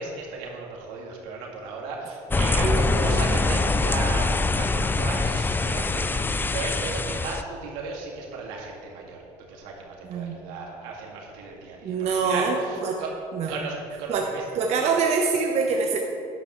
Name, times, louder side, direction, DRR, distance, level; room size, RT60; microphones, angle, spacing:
voice 1, 0.0-9.2 9.5-13.1 13.5-14.4 14.8-14.9, right 4 dB, 85° right, -1 dB, 2.2 m, -35 dB
sound 1, 2.3-7.4, left 3 dB, 15° left, 0.4 m, -24 dB
voice 2, 2.6-3.2 10.0-10.4 11.8-12.6 12.8-13.0 13.3-13.5 14.1-14.3 14.5-16.0, right 5 dB, 50° right, 1 dB, 1.0 m, -25 dB
12.5 x 10.5 x 3.2 m, 2.7 s
supercardioid pair, 95°, 14 cm